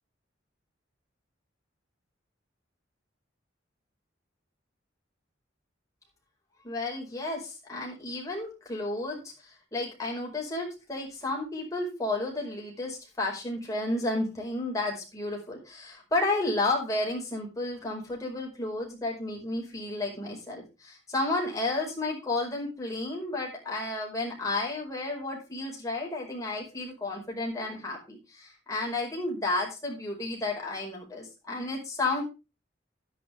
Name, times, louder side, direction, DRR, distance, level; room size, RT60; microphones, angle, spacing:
voice 1, 6.6-9.3 9.7-32.2, left 2 dB, 20° left, -1 dB, 5.1 m, -32 dB
11.5 x 10.5 x 3.5 m, 0.28 s
head